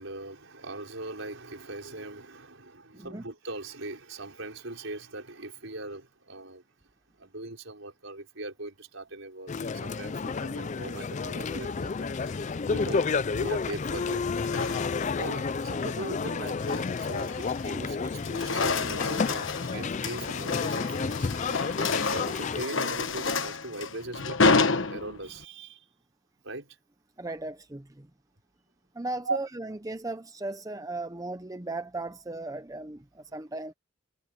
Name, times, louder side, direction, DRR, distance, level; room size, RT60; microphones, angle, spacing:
voice 1, 0.0-6.6 7.2-13.0 13.3-14.2 15.2-21.3 22.0-25.9 26.4-26.8 29.2-29.4, right 2 dB, 70° right, 5.3 m, -40 dB
voice 2, 2.9-3.2 12.8-12.9 14.5-14.6 27.2-28.1 28.9-33.7, right 2 dB, 15° right, 0.7 m, -37 dB
sound 1, 9.5-22.7, left 4 dB, 35° left, 0.4 m, -31 dB
sound 2, 12.1-12.6 13.7-15.2 15.7-15.9 16.4-17.8 18.1-25.4, left 4 dB, 65° left, 1.2 m, -30 dB
head